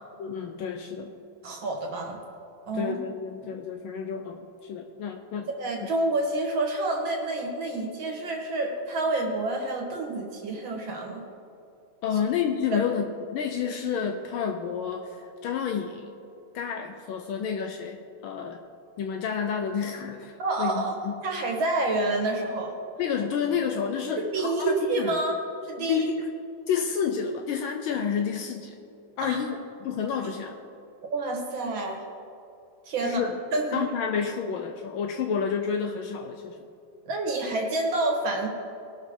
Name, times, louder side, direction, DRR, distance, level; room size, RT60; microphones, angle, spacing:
voice 1, 0.2-1.1 2.7-5.5 5.8-5.9 12.0-16.1 16.5-18.6 19.0-21.2 23.0-25.2 25.8-26.3 26.7-28.7 29.2-30.6 33.0-33.4 33.7-36.6, left 7 dB, 75° left, 5 dB, 1.4 m, -30 dB
voice 2, 1.4-2.2 2.7-3.0 5.6-11.2 12.7-12.8 20.4-21.0 21.2-22.8 24.2-25.3 25.6-26.1 29.2-29.4 31.1-32.0 32.8-33.2 33.5-33.8 37.1-38.5, right 2 dB, 65° right, 1 dB, 2.0 m, -28 dB
19.5 x 6.6 x 3.7 m, 2.7 s
omnidirectional pair, 2.3 m